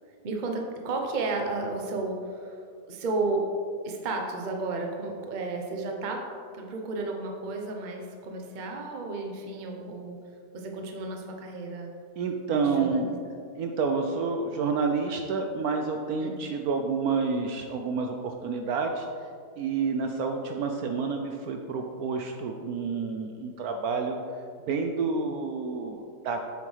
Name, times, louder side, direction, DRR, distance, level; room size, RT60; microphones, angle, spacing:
voice 1, 0.2-2.6 2.9-3.5 3.8-6.2 6.5-10.2 10.5-11.9 12.6-13.1 16.2-16.3, right 3 dB, 40° right, 2 dB, 0.7 m, -32 dB
voice 2, 12.2-13.1 13.6-19.1 19.6-24.2 24.7-26.4, right 4 dB, 70° right, 4 dB, 0.9 m, -29 dB
8.3 x 6.8 x 3.3 m, 2.3 s
omnidirectional pair, 1.8 m